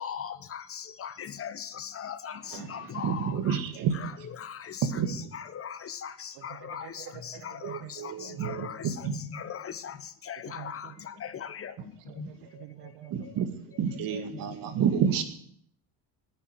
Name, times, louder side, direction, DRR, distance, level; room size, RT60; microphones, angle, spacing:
voice 1, 0.0-2.3 2.7-3.6 4.0-4.1 5.3-6.1 6.4-6.9 8.4-8.8 9.3-9.9 10.3-10.8 11.5-11.7 12.2-12.3, left 8 dB, 35° left, 12 dB, 1.2 m, -38 dB
voice 2, 2.5-4.1 4.9-5.3 7.6-9.2 13.1-13.5 13.8-15.2, right 7 dB, 60° right, 9 dB, 2.0 m, -30 dB
voice 3, 6.3-8.4 10.5-11.0 11.4-13.5 14.3-14.4, right 12 dB, 80° right, 8 dB, 1.7 m, -48 dB
9.7 x 9.6 x 9.5 m, 0.65 s
cardioid pair, 125°, 39 cm